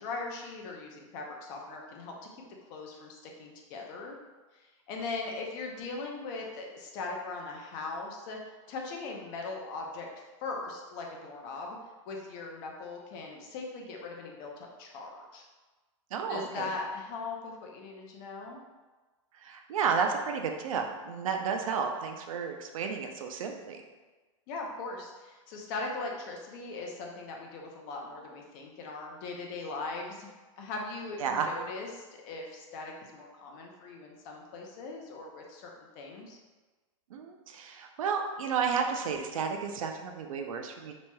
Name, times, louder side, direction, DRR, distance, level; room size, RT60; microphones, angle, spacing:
voice 1, 0.0-2.4 2.7-4.2 4.5-8.4 8.7-10.1 10.4-11.8 12.1-15.4 16.3-18.6 24.5-30.3 30.6-36.4, left 3 dB, 35° left, 0 dB, 0.6 m, -40 dB
voice 2, 16.1-16.7 19.3-23.8 31.2-31.5 37.1-40.9, right 6 dB, 80° right, 4 dB, 0.5 m, -32 dB
4.4 x 3.0 x 2.2 m, 1.3 s
supercardioid pair, 160°, 17 cm